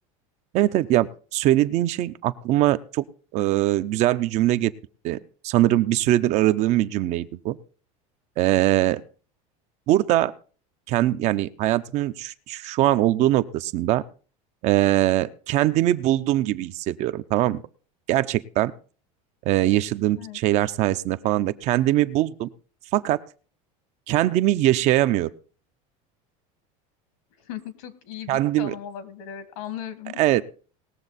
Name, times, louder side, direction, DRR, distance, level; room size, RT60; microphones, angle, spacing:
voice 1, 0.5-3.0 3.3-4.7 5.0-5.2 5.4-7.6 8.4-9.0 9.9-10.3 10.9-14.0 14.6-17.6 18.1-18.7 19.5-22.5 22.9-23.2 24.1-25.3 28.3-28.7 30.2-30.4, right 14 dB, 40° right, 12 dB, 0.5 m, -22 dB
voice 2, 27.4-30.2, left 10 dB, 80° left, 13 dB, 2.0 m, -37 dB
19.5 x 7.1 x 4.1 m, 0.38 s
cardioid pair, 160°, 17 cm